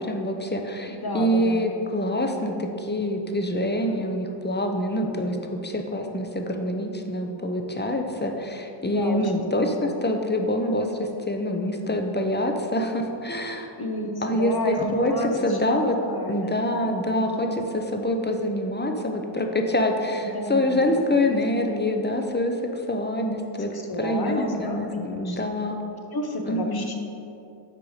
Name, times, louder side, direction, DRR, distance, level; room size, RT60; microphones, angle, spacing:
voice 1, 0.0-13.7 14.2-16.0 16.3-23.7 24.0-25.8 26.4-26.9, left 1 dB, 20° left, 4 dB, 0.7 m, -26 dB
voice 2, 0.9-1.7 8.8-10.0 13.8-16.4 16.8-17.6 20.2-21.4 23.6-25.4 26.1-26.9, left 1 dB, 50° left, 3 dB, 0.9 m, -31 dB
6.8 x 4.8 x 4.9 m, 2.8 s
wide cardioid pair, 45°, 47 cm